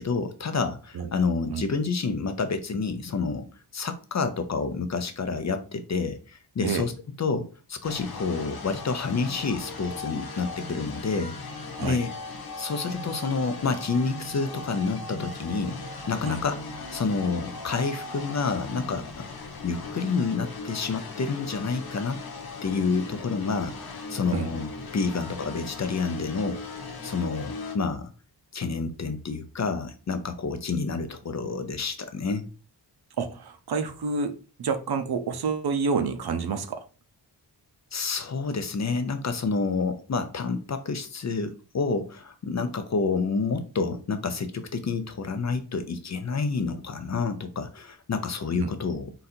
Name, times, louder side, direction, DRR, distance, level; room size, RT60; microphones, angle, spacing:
voice 1, 0.0-3.5 3.7-6.9 7.2-12.1 12.6-15.8 16.1-16.6 16.9-19.3 19.6-22.2 22.6-26.7 27.0-28.1 28.5-32.4 37.9-49.1, left 4 dB, 40° left, 0.5 m, -29 dB
sound 1, 7.8-27.8, left 3 dB, 60° left, 0.9 m, -38 dB
voice 2, 33.2-36.8 48.6-48.7, right 5 dB, 60° right, 0.6 m, -28 dB
3.9 x 2.6 x 4.2 m
wide cardioid pair, 150°, 42 cm